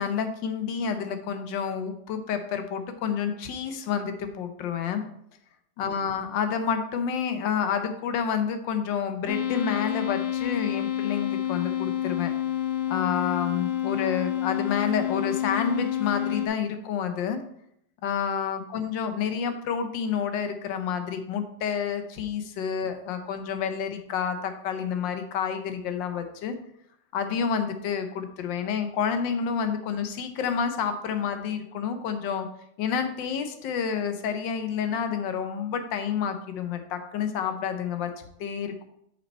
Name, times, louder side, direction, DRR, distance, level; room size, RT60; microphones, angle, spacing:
voice 1, 0.0-5.0 5.8-12.3 12.9-17.4 18.0-26.5 27.1-32.5 32.8-38.9, left 7 dB, 85° left, 8 dB, 1.5 m, -29 dB
sound 1, 9.3-16.5, left 11 dB, 55° left, 1.1 m, -28 dB
6.4 x 5.2 x 4.3 m, 0.73 s
omnidirectional pair, 1.9 m